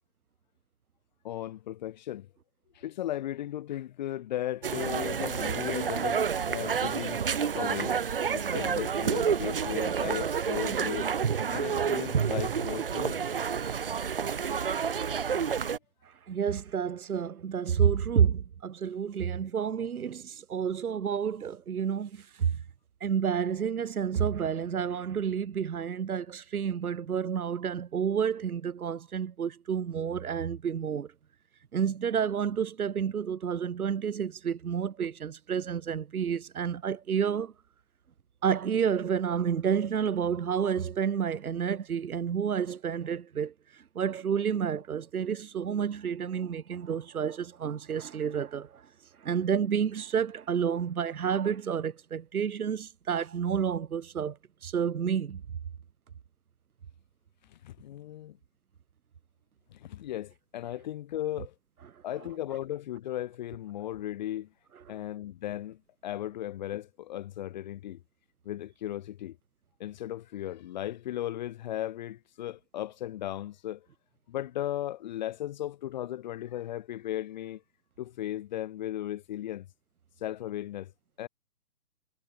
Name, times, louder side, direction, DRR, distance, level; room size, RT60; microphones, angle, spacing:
voice 1, 1.2-2.3 2.7-7.2 7.6-8.0 8.3-11.1 11.5-13.2 57.5-58.4 59.7-61.5 62.0-64.5 64.9-68.0 68.4-69.4 69.8-73.8 74.3-77.6 78.0-79.7 80.2-80.9 81.2-81.3, left 13 dB, 30° left, 2.7 m, -36 dB
sound 1, 4.6-15.8, right 7 dB, 40° right, 0.6 m, -29 dB
voice 2, 13.6-14.1 16.0-22.6 23.0-31.1 31.7-37.5 38.4-48.8 49.2-55.4 64.9-65.0, right 7 dB, 70° right, 1.6 m, -30 dB
hypercardioid pair, 165°, 46 cm